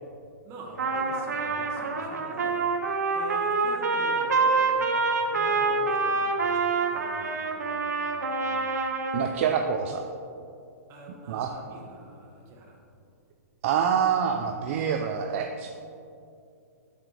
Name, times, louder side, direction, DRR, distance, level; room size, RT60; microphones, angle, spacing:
voice 1, 0.4-2.7 3.1-8.6 10.9-12.8, right 1 dB, 30° right, 0 dB, 1.3 m, -45 dB
Trumpet, 0.8-9.3, right 4 dB, 80° right, 0.7 m, -26 dB
voice 2, 9.1-10.0 11.3-11.5 13.6-15.7, right 7 dB, 50° right, 4 dB, 0.5 m, -26 dB
7.2 x 6.8 x 3.3 m, 2.5 s
hypercardioid pair, 130°, 9 cm